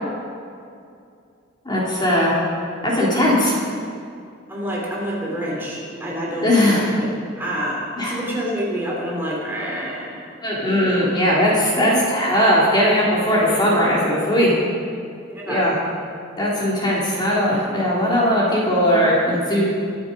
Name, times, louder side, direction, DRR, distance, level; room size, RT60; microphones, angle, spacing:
voice 1, 1.6-2.4 2.8-3.6 6.4-6.9 8.0-8.2 10.4-14.6 15.5-15.7 16.4-19.6, equal, 20° left, -6 dB, 3.1 m, -19 dB
voice 2, 4.5-7.1 7.4-10.1 10.6-11.1 11.7-12.0 15.3-15.8, equal, 10° right, -5 dB, 3.0 m, -28 dB
23.0 x 8.0 x 5.2 m, 2.4 s
head